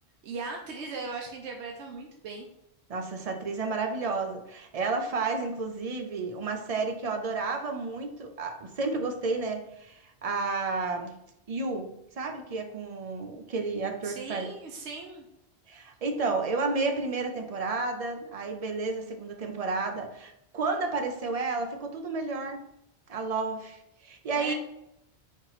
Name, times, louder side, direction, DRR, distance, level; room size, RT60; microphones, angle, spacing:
voice 1, 0.2-2.5 14.0-15.3 24.3-24.5, right 4 dB, 90° right, 1 dB, 0.9 m, -38 dB
voice 2, 2.9-11.1 11.5-11.9 12.2-14.5 15.7-22.6 23.1-24.5, right 3 dB, 45° right, 4 dB, 0.5 m, -31 dB
4.4 x 2.9 x 3.9 m, 0.82 s
omnidirectional pair, 1.1 m